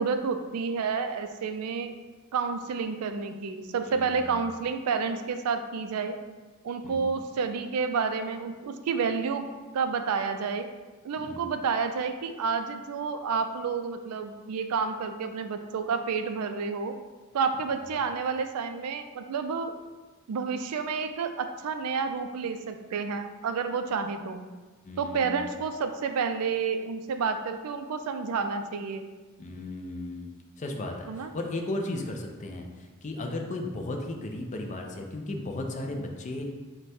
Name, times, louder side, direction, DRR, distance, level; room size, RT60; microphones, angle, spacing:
voice 1, 0.0-1.9 2.3-6.2 6.6-9.5 9.7-10.7 11.0-17.0 17.3-19.7 20.3-24.4 25.0-29.0 31.1-31.3, right 5 dB, 90° right, 8 dB, 0.4 m, -30 dB
voice 2, 24.8-25.4 29.4-30.3 30.6-36.5, left 2 dB, 35° left, 3 dB, 0.5 m, -35 dB
4.7 x 2.2 x 4.1 m, 1.3 s
head